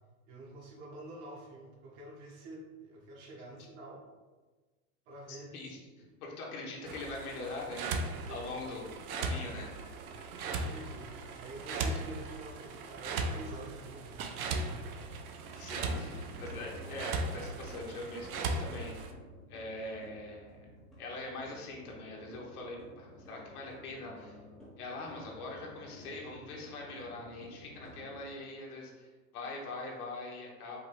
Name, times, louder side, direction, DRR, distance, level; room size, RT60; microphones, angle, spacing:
voice 1, 0.3-4.0 5.1-6.1 8.2-8.4 10.1-15.2 27.1-27.2, right 1 dB, 35° right, -1 dB, 0.9 m, -48 dB
voice 2, 5.3-5.8 6.2-9.7 15.5-19.1 19.5-20.7 21.0-24.4 24.8-30.8, left 2 dB, 80° left, -2 dB, 1.5 m, -43 dB
sound 1, 6.9-19.1, right 3 dB, 75° right, 0.7 m, -38 dB
sound 2, 15.7-28.3, equal, ahead, 0.5 m, -52 dB
5.2 x 2.6 x 3.4 m, 1.3 s
supercardioid pair, 145°, 44 cm